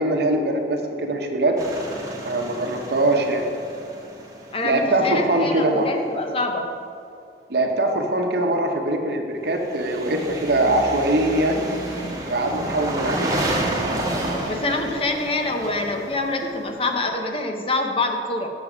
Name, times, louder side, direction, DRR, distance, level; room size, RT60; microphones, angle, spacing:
voice 1, 0.0-1.6 2.2-3.5 4.6-5.9 7.5-11.6 12.2-13.4, right 1 dB, 60° right, 3 dB, 0.9 m, -22 dB
sound 1, 1.6-5.4 9.6-17.2, right 1 dB, 20° right, 1.2 m, -30 dB
voice 2, 4.5-6.7 14.5-18.5, left 2 dB, 30° left, 4 dB, 0.6 m, -25 dB
7.1 x 6.9 x 4.9 m, 2.5 s
head